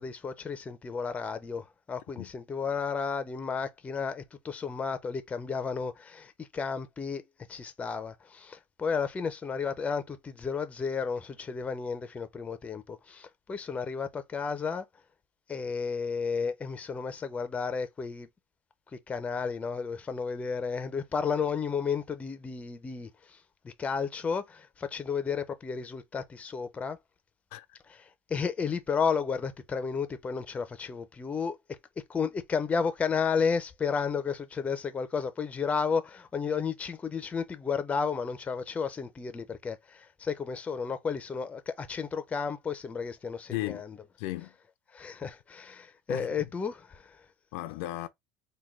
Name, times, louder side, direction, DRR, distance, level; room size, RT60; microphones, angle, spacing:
voice 1, 0.0-14.9 15.5-18.3 18.9-23.4 23.6-27.0 27.9-31.8 32.1-44.0 44.9-47.2, left 5 dB, 20° left, 0.5 m, -32 dB
voice 2, 43.5-43.8 44.2-44.5 46.1-46.3 47.5-48.1, left 17 dB, 80° left, 0.4 m, -35 dB
3.6 x 2.2 x 3.2 m
supercardioid pair, 120°, 7 cm